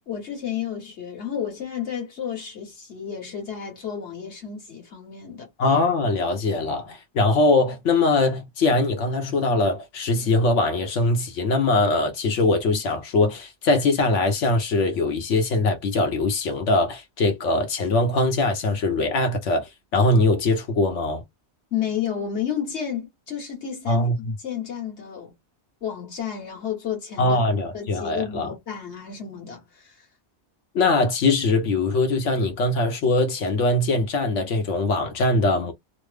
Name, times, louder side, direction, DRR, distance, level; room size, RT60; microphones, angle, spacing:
voice 1, 0.0-5.5 21.7-25.3 25.8-27.4 27.7-30.1, left 8 dB, 70° left, 1.7 m, -31 dB
voice 2, 5.6-21.2 23.9-24.1 27.2-28.5 30.7-35.7, left 2 dB, 85° left, 1.2 m, -22 dB
3.1 x 2.0 x 3.3 m
omnidirectional pair, 1.2 m